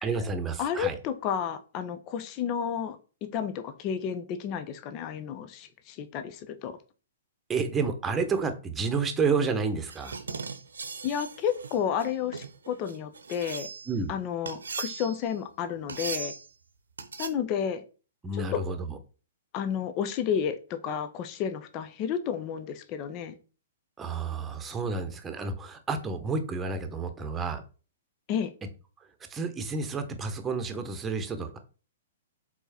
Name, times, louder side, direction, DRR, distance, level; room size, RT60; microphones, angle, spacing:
voice 1, 0.0-1.0 7.5-10.2 13.9-14.1 18.2-19.0 24.0-27.6 29.3-31.6, right 4 dB, 15° right, 7 dB, 1.2 m, -30 dB
voice 2, 0.6-3.0 3.3-6.8 11.0-13.7 14.1-16.3 17.2-17.8 18.5-18.6 19.5-23.4 28.3-28.5, left 8 dB, 30° left, 10 dB, 0.8 m, -31 dB
sound 1, 9.8-14.0 14.5-15.3 15.9-16.5 17.0-17.3, right 5 dB, 65° right, 0.9 m, -38 dB
6.9 x 4.3 x 4.4 m, 0.36 s
figure-of-eight pair, 110°, 0 cm